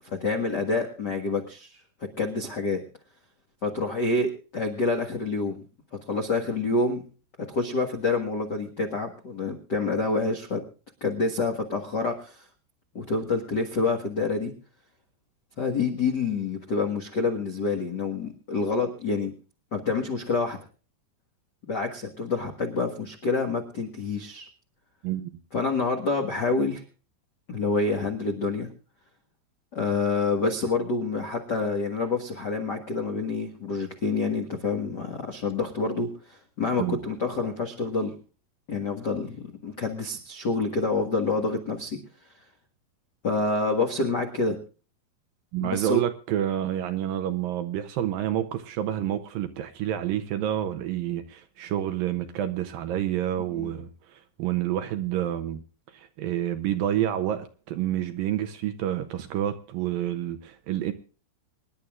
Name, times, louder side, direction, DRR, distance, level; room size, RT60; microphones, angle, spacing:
voice 1, 0.0-1.8 2.2-2.8 3.6-5.6 6.1-7.0 7.5-10.6 11.0-12.5 12.9-14.5 15.6-19.3 19.7-20.6 21.7-24.5 25.5-26.8 27.5-28.7 29.7-38.1 38.7-39.4 39.6-42.0 43.2-44.5 45.6-46.0 53.5-53.7, left 3 dB, 85° left, 0.9 m, -27 dB
voice 2, 45.5-55.6 55.9-60.9, right 11 dB, 75° right, 2.2 m, -29 dB
26.0 x 11.0 x 2.4 m
omnidirectional pair, 4.8 m